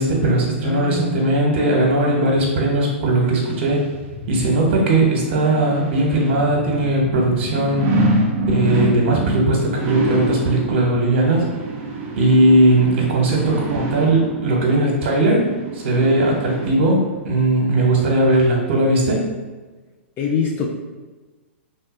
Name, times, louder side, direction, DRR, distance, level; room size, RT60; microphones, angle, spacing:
voice 1, 0.0-3.9 4.3-7.8 8.5-11.5 12.2-15.5 15.7-19.2, right 1 dB, 60° right, -1 dB, 1.2 m, -18 dB
voice 2, 0.6-1.3 20.2-20.7, left 5 dB, 30° left, -1 dB, 0.5 m, -24 dB
sound 1, 3.3-17.2 17.7-17.8, right 2 dB, 35° right, 0.7 m, -26 dB
3.2 x 2.7 x 3.8 m, 1.3 s
hypercardioid pair, 115°, 7 cm